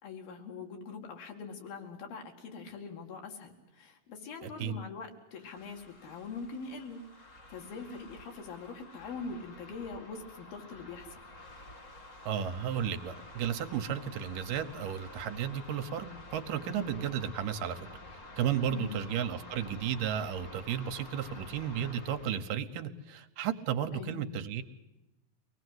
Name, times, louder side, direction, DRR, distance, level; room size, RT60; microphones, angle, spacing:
voice 1, 0.0-7.0 7.5-11.2 18.7-19.0 23.9-24.2, left 4 dB, 90° left, 3 dB, 4.0 m, -43 dB
voice 2, 4.4-4.7 12.3-16.1 16.3-24.6, right 9 dB, 75° right, 8 dB, 2.5 m, -34 dB
sound 1, 5.4-22.4, left 2 dB, 25° left, 1.9 m, -50 dB
24.0 x 18.5 x 8.0 m, 0.97 s
omnidirectional pair, 4.1 m